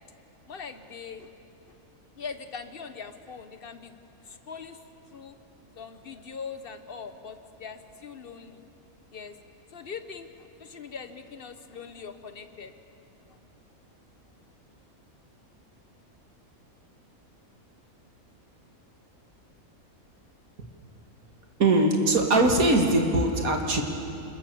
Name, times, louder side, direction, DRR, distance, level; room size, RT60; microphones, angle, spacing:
voice 1, 0.5-1.3 1.7-1.8 2.1-4.8 5.1-5.4 5.8-8.6 9.1-9.4 9.7-12.7 13.3-13.4, left 5 dB, 40° left, 9 dB, 1.3 m, -41 dB
voice 2, 21.6-23.8, right 2 dB, 75° right, 3 dB, 2.5 m, -21 dB
27.5 x 22.0 x 7.1 m, 2.8 s
omnidirectional pair, 1.5 m